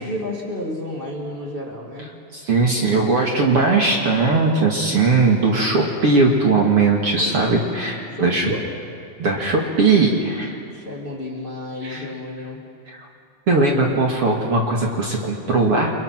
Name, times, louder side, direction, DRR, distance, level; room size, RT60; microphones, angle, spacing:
voice 1, 0.0-2.1 2.8-3.0 3.4-3.5 7.2-7.8 8.1-8.7 10.7-12.6, left 1 dB, 15° left, -2 dB, 2.4 m, -31 dB
voice 2, 2.3-8.5 9.2-10.6 11.8-12.0 12.9-13.0 13.5-15.9, right 3 dB, 45° right, -1 dB, 2.6 m, -19 dB
30.0 x 24.0 x 6.1 m, 2.4 s
omnidirectional pair, 4.0 m